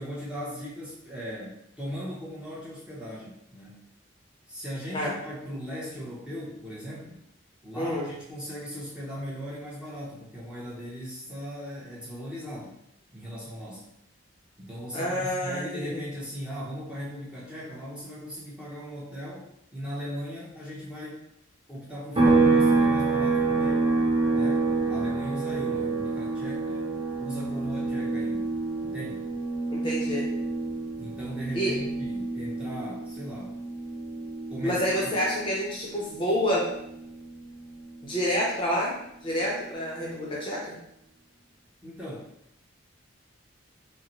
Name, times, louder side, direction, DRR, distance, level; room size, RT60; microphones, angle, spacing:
voice 1, 0.0-3.9 4.5-7.2 7.6-12.8 13.1-13.9 14.6-19.5 19.7-21.2 21.7-23.9 24.3-28.5 28.8-29.3 31.0-33.6 34.5-35.1 41.8-42.3, equal, 5° right, -7 dB, 0.8 m, -38 dB
voice 2, 7.8-8.1 14.9-16.0 29.7-30.3 31.5-31.8 34.6-36.7 38.0-38.9 39.2-40.8, equal, 25° left, -4 dB, 0.7 m, -28 dB
sound 1, 22.2-35.7 36.0-38.2, right 3 dB, 30° right, 0.9 m, -27 dB
5.4 x 2.2 x 3.1 m, 0.76 s
head